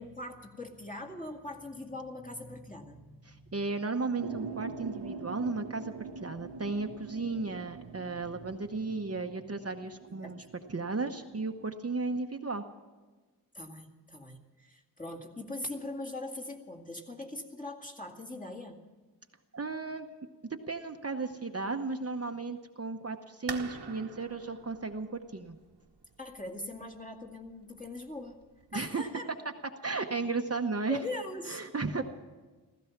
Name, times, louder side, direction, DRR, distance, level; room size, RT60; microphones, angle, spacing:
voice 1, 0.0-3.6 10.2-10.4 13.5-18.8 26.2-28.4 28.7-29.3 30.9-31.6 31.9-32.0, left 2 dB, 20° left, 2 dB, 2.1 m, -41 dB
voice 2, 3.3-10.4 10.7-12.6 19.5-20.1 20.7-25.6 28.7-29.0 29.8-31.0 31.5-32.0, right 3 dB, 35° right, 5 dB, 0.9 m, -34 dB
sound 1, 4.2-11.7, right 4 dB, 75° right, 0.8 m, -44 dB
sound 2, 23.5-29.0, right 5 dB, 90° right, 1.4 m, -47 dB
16.5 x 15.0 x 5.9 m, 1.3 s
wide cardioid pair, 90°, 40 cm